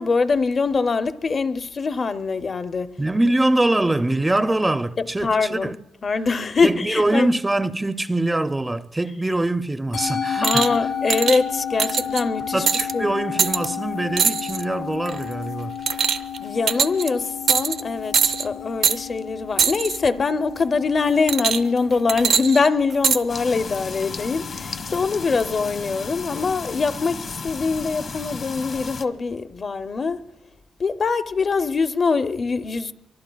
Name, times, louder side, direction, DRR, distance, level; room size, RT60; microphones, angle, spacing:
voice 1, 0.0-2.9 5.0-5.7 6.0-7.3 10.4-12.7 12.9-13.1 16.4-30.2 30.8-32.9, left 4 dB, 45° left, 0.5 m, -23 dB
voice 2, 3.0-5.8 6.6-10.7 12.5-15.8, right 1 dB, 15° right, 0.4 m, -23 dB
Musical instrument, 9.9-28.4, left 8 dB, 80° left, 6.0 m, -33 dB
sound 1, 10.4-10.8 11.1-11.4 11.8-12.2 12.7-12.9 13.4-13.7 14.2-14.6 15.1-15.3 15.9-16.4 16.7-17.1 17.5-17.8 18.1-18.5 18.8-19.0 19.6-20.0 21.3-21.8 22.1-23.2 24.0-24.1, right 6 dB, 65° right, 0.5 m, -21 dB
sound 2, 23.3-29.0, left 4 dB, 60° left, 0.9 m, -34 dB
26.0 x 24.0 x 2.3 m
cardioid pair, 100°, 0 cm